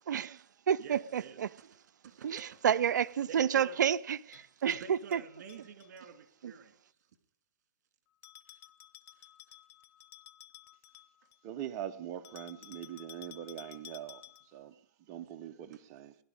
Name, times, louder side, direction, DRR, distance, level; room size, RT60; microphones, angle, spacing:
voice 1, 0.1-1.5 2.2-5.2 6.4-6.5, right 8 dB, 75° right, 0.5 m, -30 dB
voice 2, 0.8-2.7 3.3-3.8 4.7-6.9 9.1-9.6 15.7-15.8, right 6 dB, 60° right, 2.4 m, -51 dB
Bell, 4.3-6.1 8.2-11.5 12.2-14.6, left 13 dB, 25° left, 0.5 m, -54 dB
voice 3, 11.4-14.2 14.5-14.8 15.1-16.1, right 10 dB, 30° right, 0.9 m, -42 dB
20.0 x 11.0 x 5.0 m
hypercardioid pair, 140°, 10 cm